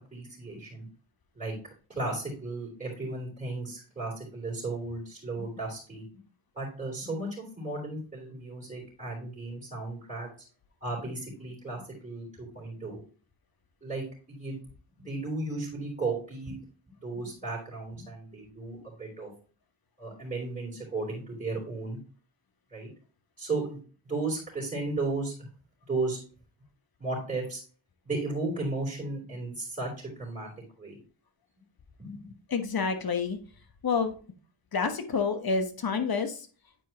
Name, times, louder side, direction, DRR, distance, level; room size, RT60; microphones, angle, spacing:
voice 1, 0.1-0.9 1.3-1.6 2.0-6.1 6.6-10.3 10.8-13.0 13.8-14.6 15.1-16.6 17.0-19.3 20.0-22.0 22.7-22.9 23.4-23.8 24.1-25.5 25.9-26.2 27.0-27.6 28.0-30.5 30.8-31.0 32.0-32.2, right 3 dB, 15° right, -5 dB, 3.4 m, -34 dB
voice 2, 32.5-33.4 33.8-34.1 34.7-36.5, left 5 dB, 50° left, 8 dB, 1.2 m, -28 dB
9.1 x 4.6 x 2.9 m, 0.38 s
cardioid pair, 60°, 48 cm